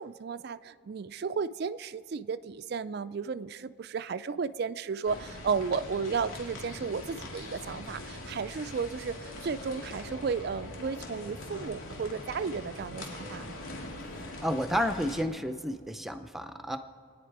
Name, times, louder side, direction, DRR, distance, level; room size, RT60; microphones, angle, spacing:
voice 1, 0.0-13.6, right 5 dB, 50° right, 0.3 m, -34 dB
sound 1, 5.0-15.2, left 1 dB, 85° left, 2.3 m, -42 dB
voice 2, 14.4-16.8, equal, ahead, 0.6 m, -31 dB
29.5 x 10.0 x 4.7 m
head